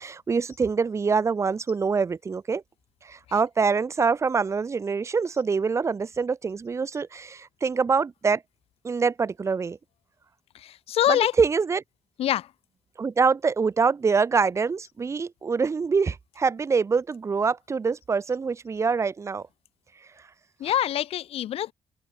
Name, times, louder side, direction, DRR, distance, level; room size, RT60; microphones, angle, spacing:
voice 1, 0.0-2.6 3.0-8.4 8.8-9.8 11.1-11.8 13.0-19.4 20.6-20.7, right 5 dB, 30° right, 4.3 m, -25 dB
voice 2, 10.9-11.3 12.2-12.5 20.6-21.7, left 11 dB, 75° left, 2.4 m, -24 dB
open air
cardioid pair, 160°, 10 cm